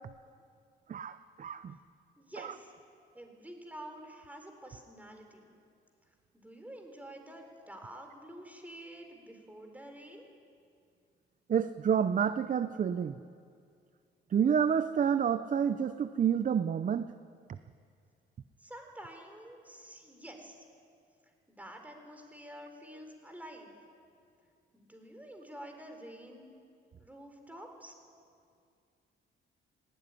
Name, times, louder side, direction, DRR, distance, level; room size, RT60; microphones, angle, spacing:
voice 1, 0.9-1.8 2.4-2.5 11.5-13.2 14.3-17.1, right 8 dB, 40° right, 13 dB, 0.7 m, -29 dB
voice 2, 2.2-2.7 3.1-5.5 6.3-10.3 18.6-20.6 21.5-23.7 24.7-26.5 27.0-27.9, right 1 dB, 10° right, 4 dB, 4.3 m, -48 dB
19.0 x 17.0 x 10.0 m, 2.3 s
cardioid pair, 90°, 20 cm